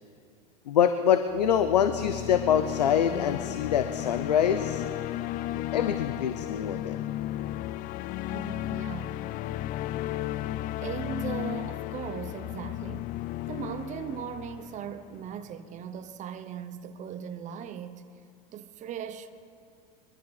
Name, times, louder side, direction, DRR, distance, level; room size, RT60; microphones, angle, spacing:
voice 1, 0.7-4.8 5.5-7.0, left 8 dB, 90° left, 0.7 m, -25 dB
sound 1, 1.3-15.5, left 14 dB, 45° left, 0.4 m, -34 dB
voice 2, 8.3-9.2 9.5-9.6 10.8-13.1 13.5-18.0 18.5-19.3, right 8 dB, 35° right, 0.9 m, -38 dB
22.0 x 14.0 x 4.1 m
hypercardioid pair, 95°, 20 cm